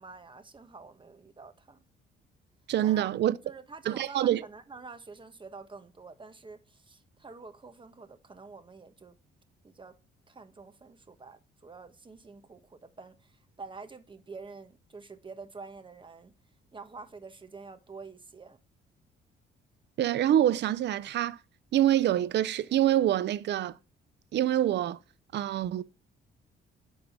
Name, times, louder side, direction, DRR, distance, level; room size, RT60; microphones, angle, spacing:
voice 1, 0.0-1.8 2.8-9.2 9.6-10.0 10.3-16.4 16.7-18.6, right 4 dB, 25° right, 1.3 m, -47 dB
voice 2, 2.7-3.4 3.9-4.4 20.0-21.4 21.7-23.8 24.3-25.0 25.3-25.8, right 12 dB, 60° right, 0.5 m, -26 dB
11.0 x 3.8 x 7.4 m
cardioid pair, 90°, 20 cm